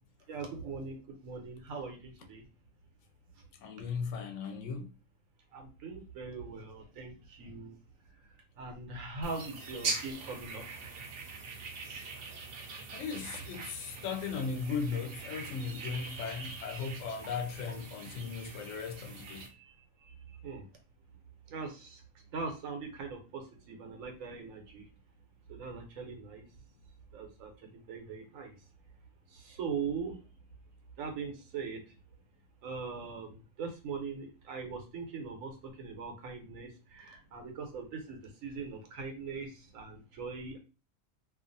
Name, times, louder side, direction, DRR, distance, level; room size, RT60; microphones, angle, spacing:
voice 1, 0.3-2.5 5.5-7.8 8.2-10.8 19.5-19.7 20.0-20.7 21.5-22.0 22.3-24.9 25.5-26.5 27.1-28.7 29.3-30.2 31.0-31.9 32.6-40.6, right 5 dB, 85° right, 1.1 m, -41 dB
voice 2, 3.6-4.9 12.9-19.5, left 5 dB, 75° left, 0.9 m, -37 dB
sound 1, 9.2-19.5, right 3 dB, 60° right, 0.7 m, -42 dB
2.5 x 2.4 x 2.5 m
omnidirectional pair, 1.3 m